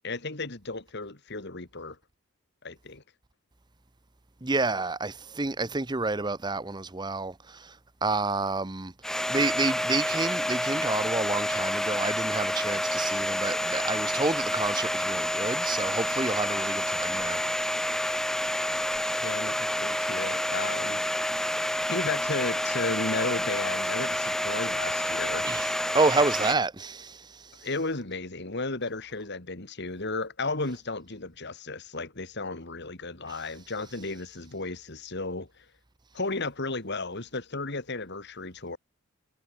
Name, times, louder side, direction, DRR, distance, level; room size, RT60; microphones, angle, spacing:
voice 1, 0.0-2.0 2.6-3.0 19.2-21.2 21.9-25.5 27.6-35.6 36.1-38.8, left 3 dB, 55° left, 2.4 m, -34 dB
voice 2, 4.4-7.8 8.0-8.9 9.3-17.4 25.4-27.7, right 3 dB, 20° right, 0.8 m, -29 dB
Domestic sounds home sounds, 9.0-26.5, left 1 dB, ahead, 0.3 m, -29 dB
head